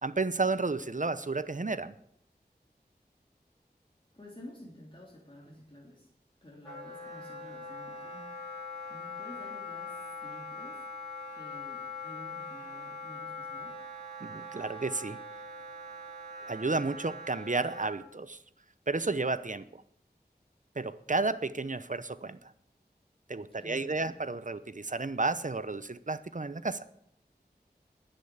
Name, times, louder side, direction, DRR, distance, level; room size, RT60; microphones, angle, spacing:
voice 1, 0.0-1.9 14.2-15.2 16.5-18.4 18.9-19.8 20.8-22.5 23.3-26.9, right 3 dB, 50° right, 14 dB, 0.8 m, -32 dB
voice 2, 4.1-6.1 6.4-8.6 8.9-13.8 23.6-24.2, left 1 dB, 30° left, -3 dB, 3.3 m, -51 dB
Wind instrument woodwind instrument, 6.6-17.9, left 2 dB, ahead, 6.7 m, -42 dB
10.0 x 8.8 x 9.6 m, 0.72 s
wide cardioid pair, 45°, 17 cm